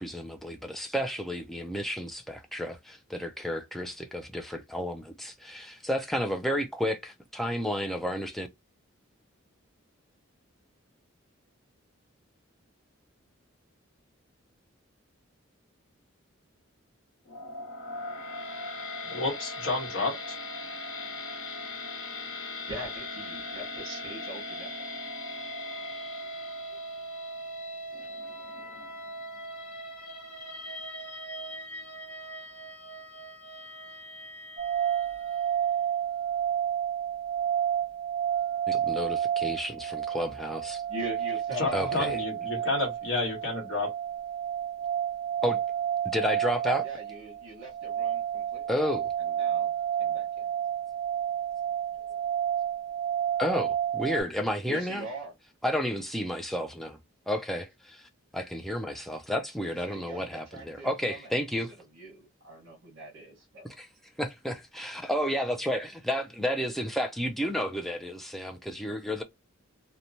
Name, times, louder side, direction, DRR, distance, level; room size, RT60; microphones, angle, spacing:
voice 1, 0.0-8.5 38.7-40.8 41.7-42.2 45.4-45.6 46.0-46.9 48.7-49.1 53.4-55.1 55.6-57.0 57.3-61.7 63.8-63.9 64.2-69.2, equal, ahead, 0.3 m, -31 dB
sound 1, 17.3-35.5, left 1 dB, 85° left, 1.0 m, -39 dB
voice 2, 19.1-20.4 41.6-43.9, left 3 dB, 60° left, 1.1 m, -30 dB
voice 3, 22.7-24.7 40.9-42.0 42.5-42.9 46.8-48.6 49.4-49.7 50.0-50.5 51.9-52.0 54.7-55.3 59.6-61.3 61.9-63.7, right 1 dB, 75° right, 1.1 m, -41 dB
sound 2, 34.6-54.2, right 9 dB, 40° right, 1.2 m, -30 dB
2.9 x 2.2 x 2.6 m
head